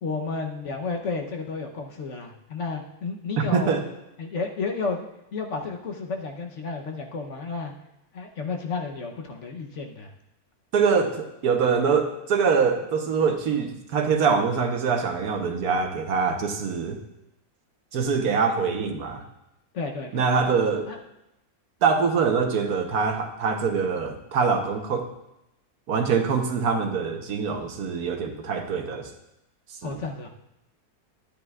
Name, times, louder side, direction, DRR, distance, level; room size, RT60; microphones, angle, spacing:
voice 1, 0.0-3.7 4.2-5.1 5.3-7.7 8.1-10.1 19.7-20.4 20.9-21.0 29.8-30.3, left 4 dB, 55° left, 3 dB, 1.1 m, -32 dB
voice 2, 3.4-3.8 10.7-17.0 17.9-19.2 20.1-20.9 21.8-25.1 25.9-29.1 29.8-30.0, right 5 dB, 80° right, 5 dB, 1.5 m, -24 dB
12.0 x 10.0 x 2.4 m, 0.88 s
omnidirectional pair, 1.6 m